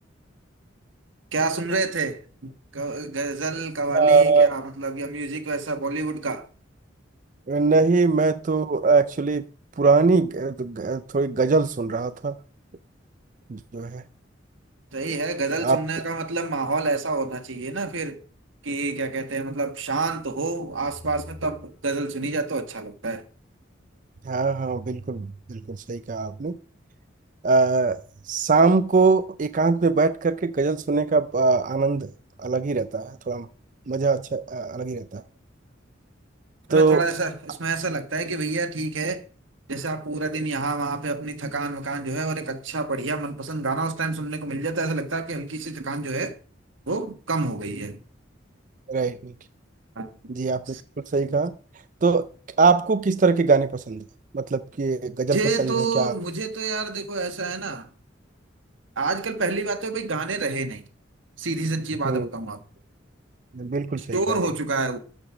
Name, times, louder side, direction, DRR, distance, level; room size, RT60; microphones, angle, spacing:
voice 1, 1.3-6.5 14.9-18.1 18.6-23.2 36.7-39.2 39.7-46.3 46.9-48.0 50.0-50.1 50.7-50.8 55.3-57.9 59.0-60.8 61.4-62.6 64.0-65.0, right 3 dB, 90° right, 1.4 m, -28 dB
voice 2, 3.9-4.5 7.5-9.5 9.8-12.4 13.5-14.0 15.6-15.8 24.3-26.6 27.4-28.0 28.3-32.1 32.4-33.5 33.9-35.2 36.7-37.0 48.9-49.3 50.3-50.6 51.1-51.5 52.0-52.2 52.6-54.0 54.3-56.1 62.0-62.3 63.6-64.4, right 4 dB, 40° right, 0.5 m, -22 dB
sound 1, 20.0-21.8, left 1 dB, 40° left, 7.3 m, -45 dB
13.0 x 5.3 x 6.1 m
head